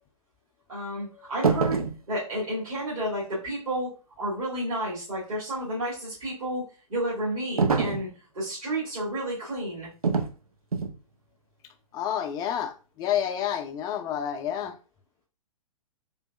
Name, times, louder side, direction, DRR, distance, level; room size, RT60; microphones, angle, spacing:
voice 1, 0.7-6.6 6.9-8.1 8.3-9.9, right 1 dB, 70° right, 2.0 m, -31 dB
sound 1, 1.4-2.0 7.6-8.1 10.0-10.4 10.7-11.0, right 5 dB, 85° right, 0.5 m, -24 dB
voice 2, 11.9-14.8, left 9 dB, 20° left, 0.4 m, -29 dB
3.8 x 3.3 x 2.3 m
figure-of-eight pair, 115°, 18 cm